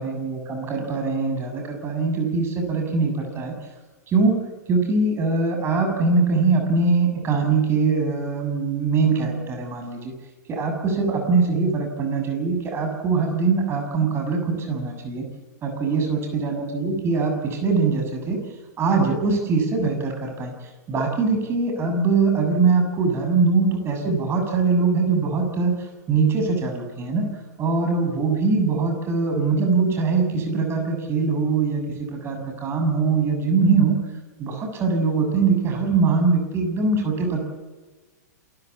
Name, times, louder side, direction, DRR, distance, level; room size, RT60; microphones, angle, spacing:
voice 1, 0.0-3.6 4.1-4.4 4.7-10.1 10.5-15.2 15.6-18.4 18.8-20.5 20.9-27.3 27.6-34.0 34.4-37.4, right 4 dB, 25° right, 4 dB, 7.0 m, -22 dB
27.5 x 14.0 x 8.6 m, 1.3 s
figure-of-eight pair, 100°, 9 cm